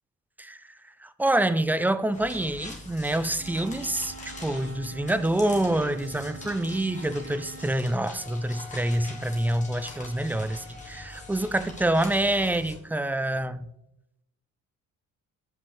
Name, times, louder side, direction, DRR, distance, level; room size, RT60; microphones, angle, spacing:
voice 1, 1.0-13.7, right 1 dB, 5° right, 0.3 m, -26 dB
sound 1, 2.1-12.7, left 2 dB, 25° left, 1.7 m, -44 dB
Wind instrument woodwind instrument, 3.4-7.8, right 4 dB, 35° right, 1.0 m, -45 dB
Wind instrument woodwind instrument 2, 7.9-12.4, left 4 dB, 65° left, 2.5 m, -48 dB
7.7 x 5.4 x 3.3 m
cardioid pair, 90°, 30 cm